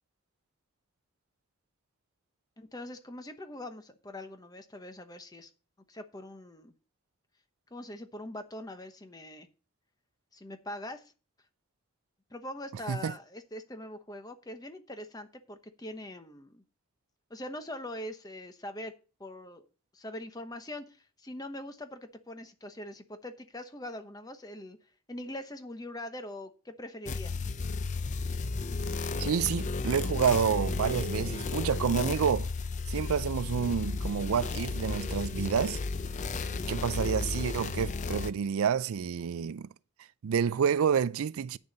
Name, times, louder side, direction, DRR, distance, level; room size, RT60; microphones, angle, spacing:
voice 1, 2.6-5.5 5.9-6.7 7.7-9.5 10.3-11.1 12.3-16.6 17.3-18.9 19.2-19.7 19.9-24.8 25.1-27.4, left 1 dB, 15° left, 0.9 m, -42 dB
sound 1, 27.1-38.3, left 4 dB, 35° left, 0.4 m, -33 dB
voice 2, 29.2-32.5 32.9-35.8 36.7-39.7 40.2-41.6, right 7 dB, 80° right, 0.4 m, -29 dB
9.4 x 6.8 x 5.3 m
head